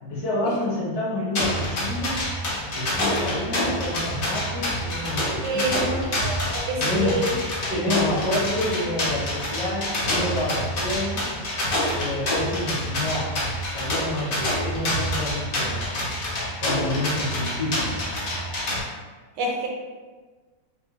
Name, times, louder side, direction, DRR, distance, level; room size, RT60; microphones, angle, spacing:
voice 1, 0.0-2.2 2.7-6.1 6.8-7.4 7.7-11.2 12.0-13.4 13.7-15.8 16.6-18.0, left 1 dB, 55° left, -6 dB, 1.4 m, -28 dB
sound 1, 1.4-18.8, left 1 dB, 75° left, 0.5 m, -27 dB
voice 2, 5.4-5.9 6.2-7.4 19.4-19.7, right 2 dB, 75° right, 0 dB, 1.2 m, -27 dB
4.2 x 2.1 x 3.1 m, 1.4 s
omnidirectional pair, 2.1 m